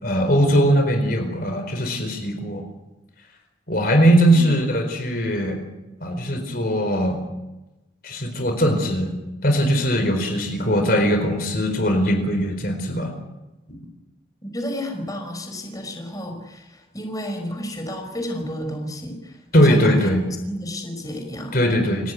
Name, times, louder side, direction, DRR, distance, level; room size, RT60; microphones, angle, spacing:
voice 1, 0.0-2.6 3.7-5.6 6.0-7.2 8.0-9.1 9.4-13.1 13.7-13.8 19.5-20.2 21.5-22.1, equal, 50° left, 5 dB, 4.5 m, -20 dB
voice 2, 14.4-20.1 20.5-21.6, equal, 20° left, 4 dB, 5.2 m, -31 dB
29.5 x 18.0 x 8.4 m, 1.0 s
head